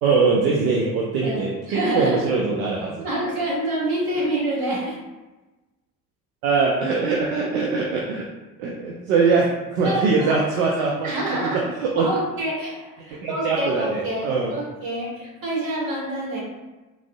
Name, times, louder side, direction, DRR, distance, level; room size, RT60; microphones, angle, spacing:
voice 1, 0.0-3.1 6.4-8.3 8.6-11.1 11.4-11.5 11.8-12.1 13.1-14.5, right 4 dB, 70° right, -2 dB, 0.5 m, -22 dB
voice 2, 1.7-2.2 3.0-5.0 9.8-10.4 11.0-11.6 12.0-16.4, right 1 dB, 50° right, -5 dB, 1.3 m, -27 dB
3.5 x 2.0 x 2.3 m, 1.1 s
figure-of-eight pair, 50°, 46 cm